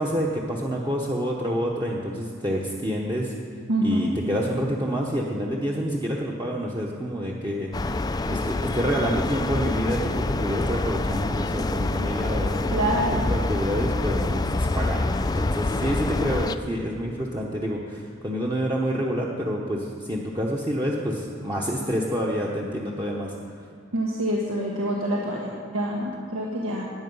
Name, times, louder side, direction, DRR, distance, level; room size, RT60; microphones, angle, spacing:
voice 1, 0.0-3.3 3.8-7.9 8.3-12.9 13.3-15.1 15.3-23.3, equal, 20° right, -3 dB, 1.0 m, -28 dB
voice 2, 3.7-4.1 12.7-13.3 23.9-26.9, right 1 dB, 90° right, -3 dB, 1.4 m, -26 dB
sound 1, 7.7-16.6, left 2 dB, 20° left, 0.3 m, -26 dB
19.0 x 8.6 x 5.5 m, 2.2 s
head